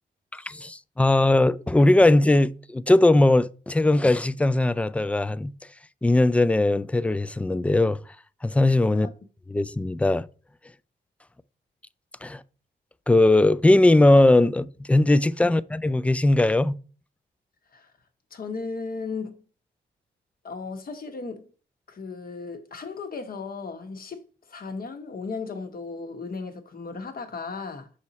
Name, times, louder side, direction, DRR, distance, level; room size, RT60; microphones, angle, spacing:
voice 1, 0.3-5.5 6.0-8.0 8.4-9.1 9.5-10.3 12.2-12.4 13.1-16.8, left 2 dB, 5° left, 0.3 m, -19 dB
voice 2, 18.3-19.4 20.4-21.5 21.9-24.2 24.5-27.9, left 4 dB, 55° left, 1.3 m, -35 dB
6.4 x 4.2 x 4.2 m
cardioid pair, 75°, 18 cm